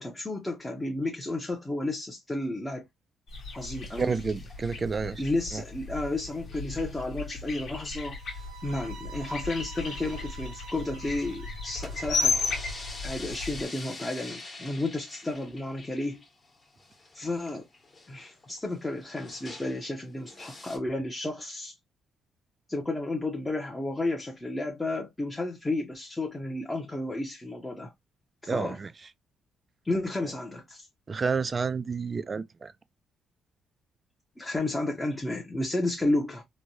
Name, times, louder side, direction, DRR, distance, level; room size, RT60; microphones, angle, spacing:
voice 1, 0.0-2.8 3.5-4.2 5.2-8.2 8.6-12.4 13.0-16.2 17.1-17.6 18.1-21.7 22.7-27.9 28.4-28.8 29.8-30.9 34.4-36.4, left 2 dB, 15° left, 0.7 m, -32 dB
sound 1, 3.3-13.6, left 3 dB, 65° left, 1.2 m, -35 dB
sound 2, 3.8-5.0 6.2-6.5 6.7-6.8 7.0-7.1 7.4-7.5 8.1-8.7 9.2-11.1 11.6-19.9 20.3-20.8, left 2 dB, 35° left, 1.3 m, -46 dB
voice 2, 3.9-5.2 5.5-5.6 28.5-28.9 31.1-32.7, right 5 dB, 35° right, 0.3 m, -30 dB
sound 3, 8.2-13.2, right 7 dB, 90° right, 0.9 m, -48 dB
3.1 x 2.2 x 2.6 m
cardioid pair, 90°, 0 cm